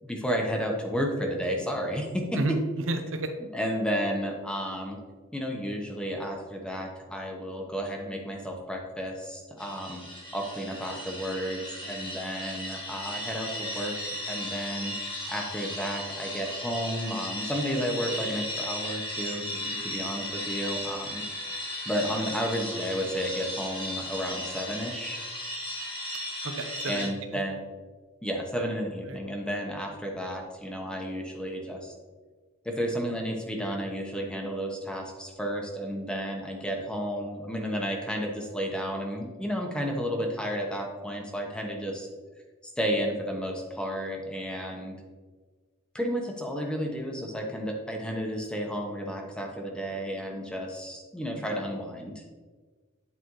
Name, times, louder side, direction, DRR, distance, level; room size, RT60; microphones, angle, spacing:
voice 1, 0.0-2.4 3.5-5.0 5.3-10.0 10.3-14.9 15.3-21.5 21.9-25.2 26.8-27.6 28.2-31.9 32.6-42.1 42.6-45.0 45.9-52.2, equal, 5° left, 1 dB, 0.9 m, -32 dB
voice 2, 2.9-3.3 26.4-27.4 29.1-29.2, right 2 dB, 65° right, 6 dB, 0.8 m, -31 dB
sound 1, 9.6-27.1, left 1 dB, 25° left, 1.4 m, -36 dB
9.6 x 4.3 x 3.1 m, 1.4 s
head